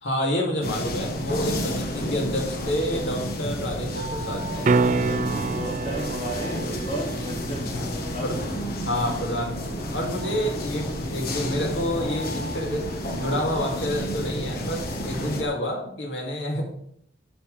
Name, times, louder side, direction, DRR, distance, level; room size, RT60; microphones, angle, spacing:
voice 1, 0.0-4.7 7.8-7.9 8.2-8.4 8.8-9.6 9.9-12.8 13.2-16.6, equal, 80° left, -1 dB, 2.9 m, -28 dB
sound 1, 0.6-15.4, equal, 55° left, 1.5 m, -31 dB
sound 2, 4.6-10.7 15.3-15.4, right 4 dB, 45° right, 0.4 m, -29 dB
voice 2, 4.8-7.8 8.1-8.3 14.8-15.0, right 1 dB, 40° left, -3 dB, 3.3 m, -34 dB
Fixed-wing aircraft airplane, 5.3-15.5, left 1 dB, 25° right, 2.4 m, -40 dB
11.5 x 6.8 x 3.5 m, 0.70 s
head